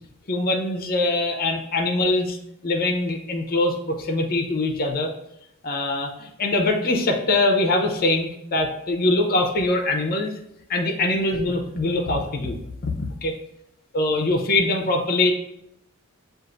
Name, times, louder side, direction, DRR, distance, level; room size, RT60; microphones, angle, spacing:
voice 1, 0.3-2.4 2.6-5.1 5.6-10.3 10.7-12.6 12.8-12.9 13.2-13.3 13.9-15.3, left 2 dB, 45° left, 3 dB, 0.7 m, -23 dB
7.5 x 2.5 x 2.5 m, 0.80 s
head